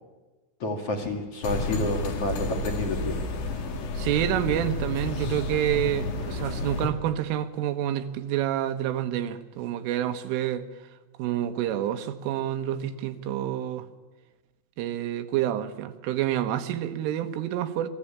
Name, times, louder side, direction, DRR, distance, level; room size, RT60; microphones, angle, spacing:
voice 1, 0.6-3.2, left 2 dB, 45° left, 4 dB, 2.3 m, -29 dB
sound 1, 1.4-6.9, left 2 dB, 65° left, 4.4 m, -31 dB
voice 2, 4.0-10.7 11.2-13.9 14.8-17.9, right 11 dB, 90° right, 9 dB, 3.8 m, -28 dB
27.0 x 20.0 x 8.8 m, 1.2 s
omnidirectional pair, 5.6 m